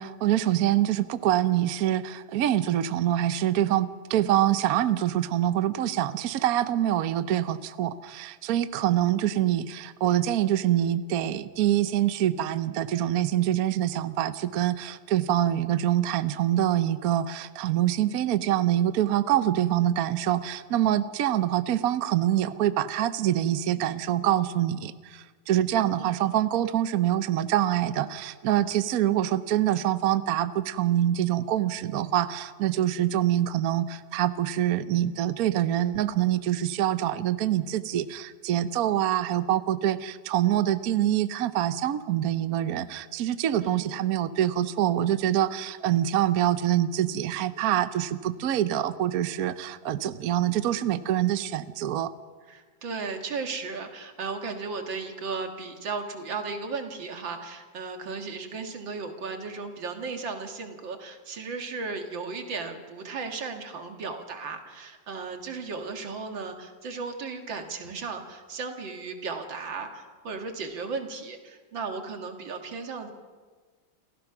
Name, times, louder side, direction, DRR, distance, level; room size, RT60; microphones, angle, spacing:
voice 1, 0.0-52.1, right 12 dB, 60° right, 13 dB, 1.0 m, -25 dB
voice 2, 9.3-9.6 25.8-26.3 43.6-43.9 52.5-73.1, right 4 dB, 80° right, 5 dB, 2.5 m, -35 dB
28.5 x 15.0 x 6.0 m, 1.5 s
omnidirectional pair, 2.0 m